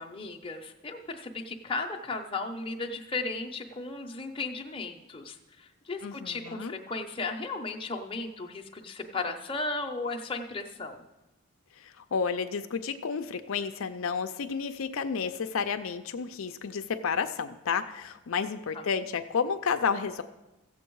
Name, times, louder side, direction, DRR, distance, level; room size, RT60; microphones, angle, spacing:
voice 1, 0.0-11.0 18.7-18.9, left 3 dB, 25° left, 2 dB, 0.7 m, -35 dB
voice 2, 6.0-6.7 11.8-20.2, left 6 dB, 70° left, 8 dB, 0.5 m, -31 dB
15.5 x 7.1 x 4.6 m, 1.0 s
head